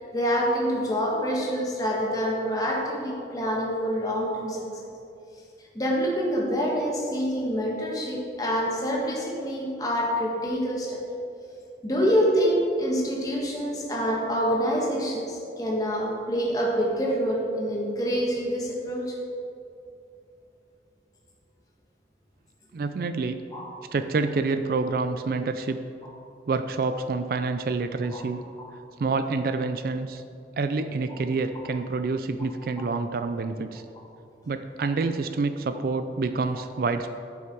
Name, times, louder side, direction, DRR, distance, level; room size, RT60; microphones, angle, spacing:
voice 1, 0.0-4.7 5.7-11.0 11.8-19.1 23.5-23.7 28.1-28.2 28.6-28.7, equal, 20° left, -3 dB, 1.5 m, -26 dB
voice 2, 22.7-23.4 23.9-25.8 26.5-28.4 29.0-30.2 30.6-33.8 34.5-37.1, right 4 dB, 55° right, 10 dB, 0.3 m, -27 dB
11.0 x 5.9 x 4.6 m, 2.6 s
head